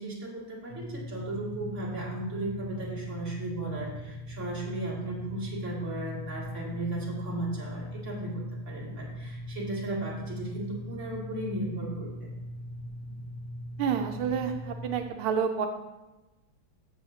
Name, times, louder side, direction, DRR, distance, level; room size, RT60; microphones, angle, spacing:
voice 1, 0.0-12.3, right 2 dB, 35° right, -5 dB, 2.7 m, -36 dB
sound 1, 0.7-15.0, equal, 50° left, 1.4 m, -40 dB
voice 2, 13.8-15.7, right 7 dB, 85° right, 5 dB, 1.4 m, -29 dB
15.0 x 6.4 x 2.8 m, 1.1 s
omnidirectional pair, 2.3 m